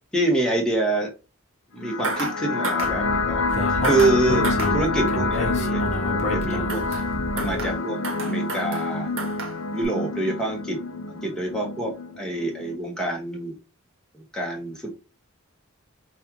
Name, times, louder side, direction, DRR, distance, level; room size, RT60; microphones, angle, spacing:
voice 1, 0.1-1.1 1.7-3.4 3.8-6.8 7.3-9.1 9.7-10.8 11.1-13.6 14.1-14.9, right 2 dB, 5° left, -1 dB, 0.9 m, -26 dB
sound 1, 1.8-12.8, left 3 dB, 65° left, 0.5 m, -27 dB
sound 2, 2.0-2.4 2.6-2.9 3.8-4.2 4.4-4.7 6.7-7.1 7.4-7.8 8.0-8.9 9.2-9.6 9.8-9.9, right 3 dB, 60° right, 0.9 m, -30 dB
Speech, 2.8-7.7, equal, 35° left, 0.9 m, -30 dB
5.3 x 2.3 x 2.9 m, 0.30 s
head